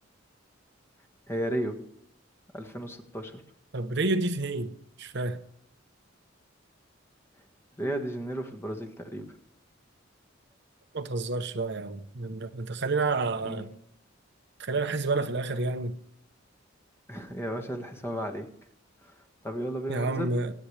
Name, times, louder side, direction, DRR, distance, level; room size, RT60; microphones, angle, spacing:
voice 1, 1.3-1.8 2.5-3.4 7.8-9.3 13.4-13.7 17.1-18.5 19.0-19.1 19.4-20.4, equal, 15° left, 1.6 m, -34 dB
voice 2, 3.7-5.4 10.9-13.7 14.6-16.0 19.9-20.5, right 3 dB, 60° right, 0.9 m, -29 dB
26.0 x 8.7 x 3.3 m
head